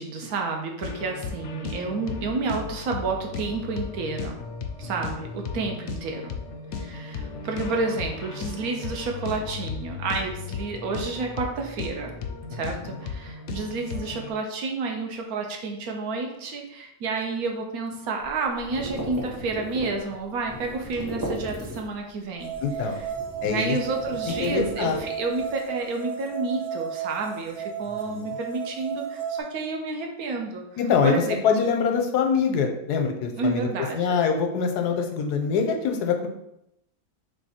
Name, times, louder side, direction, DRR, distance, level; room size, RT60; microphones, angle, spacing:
voice 1, 0.0-4.4 4.8-6.3 6.7-12.1 12.5-22.5 23.4-30.6 31.0-31.4 33.3-34.1, right 3 dB, 70° right, 2 dB, 1.2 m, -30 dB
sound 1, 0.8-14.3, left 5 dB, 70° left, 0.6 m, -35 dB
voice 2, 12.5-13.0 22.6-23.0 23.4-23.8 24.3-25.0 27.9-28.4 30.8-33.7 33.9-36.3, left 6 dB, 90° left, 4 dB, 1.2 m, -24 dB
sound 2, 18.2-22.1 22.4-25.5, equal, 15° right, 0.9 m, -37 dB
sound 3, 22.4-29.4, right 7 dB, 50° right, 0.9 m, -34 dB
3.5 x 3.3 x 4.2 m, 0.82 s
omnidirectional pair, 1.6 m